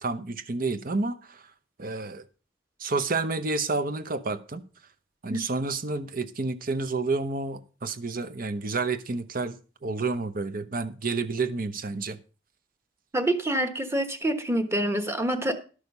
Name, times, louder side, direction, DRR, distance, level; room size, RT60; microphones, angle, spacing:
voice 1, 0.0-1.4 1.8-2.2 2.8-4.6 5.2-9.6 9.8-12.2, right 3 dB, 50° right, 0.9 m, -30 dB
voice 2, 13.1-15.5, right 1 dB, 15° right, 1.2 m, -26 dB
12.0 x 6.5 x 5.3 m
head